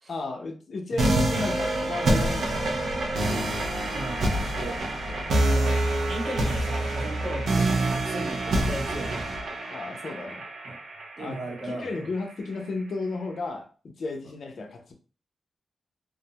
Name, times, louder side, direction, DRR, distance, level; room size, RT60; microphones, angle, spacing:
voice 1, 0.1-2.7 9.7-10.5 11.2-14.9, left 3 dB, 65° left, 3 dB, 0.6 m, -33 dB
sound 1, 1.0-12.0, right 1 dB, 75° right, 0.6 m, -26 dB
voice 2, 3.1-5.8 6.1-9.4 10.6-10.8 11.2-12.1, right 2 dB, 55° right, -2 dB, 0.9 m, -37 dB
2.5 x 2.1 x 2.8 m, 0.37 s
wide cardioid pair, 100°, 0 cm